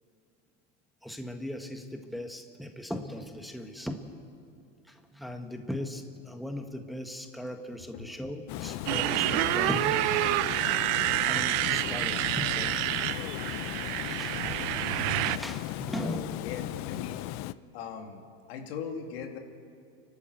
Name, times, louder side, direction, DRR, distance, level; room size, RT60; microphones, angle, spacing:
voice 1, 1.0-4.2 4.9-10.0 11.2-12.9 14.1-16.3, left 1 dB, ahead, 4 dB, 1.6 m, -38 dB
Water, 8.5-17.5, left 16 dB, 60° left, 0.6 m, -36 dB
Motorcycle, 8.9-15.4, right 16 dB, 65° right, 0.8 m, -28 dB
voice 2, 16.0-17.2 17.7-19.4, left 6 dB, 80° left, 4 dB, 2.4 m, -40 dB
29.0 x 12.0 x 8.0 m, 2.5 s
supercardioid pair, 105°, 31 cm